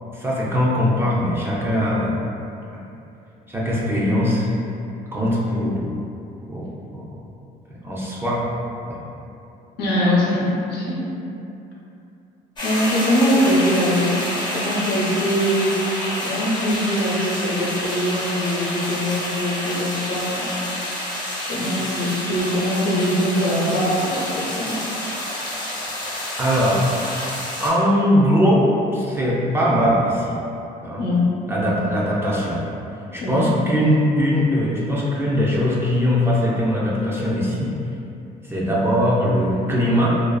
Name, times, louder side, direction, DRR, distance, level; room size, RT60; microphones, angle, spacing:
voice 1, 0.1-2.1 3.5-4.5 5.1-5.9 6.5-7.0 7.8-8.5 8.9-9.0 26.4-26.9 27.6-30.4 30.8-31.0 31.5-32.6 33.1-37.7 38.5-40.1, equal, 15° right, -6 dB, 0.4 m, -20 dB
voice 2, 9.8-11.1 12.6-14.3 14.5-15.7 16.2-20.8 21.5-24.8 31.0-31.4 33.2-33.5, equal, 75° left, -6 dB, 0.7 m, -22 dB
sound 1, 12.6-27.7, left 1 dB, 25° left, 0.6 m, -28 dB
2.4 x 2.2 x 2.3 m, 2.7 s
cardioid pair, 110°, 17 cm